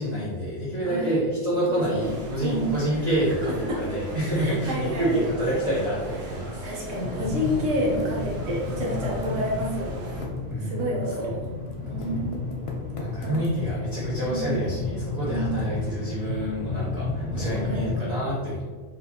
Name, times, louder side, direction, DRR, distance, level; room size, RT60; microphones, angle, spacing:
voice 1, 0.0-7.0 10.5-10.9 11.2-11.4 13.0-18.7, right 1 dB, 35° right, -8 dB, 0.8 m, -28 dB
voice 2, 0.8-1.2 1.5-2.1 2.4-2.8 3.4-3.8 4.4-5.1 5.5-5.6 6.2-6.3 6.6-10.1 10.6-11.4 11.9-12.7 13.2-13.4 14.3-15.6 17.3-18.2, equal, 65° right, -3 dB, 1.2 m, -30 dB
sound 1, 2.0-10.2, right 2 dB, 90° right, 1.3 m, -39 dB
sound 2, 7.0-18.0, left 3 dB, 5° right, 1.1 m, -32 dB
Typing, 7.9-9.6 9.9-13.9, equal, 65° left, 0.3 m, -41 dB
4.2 x 2.8 x 2.8 m, 1.4 s
omnidirectional pair, 1.5 m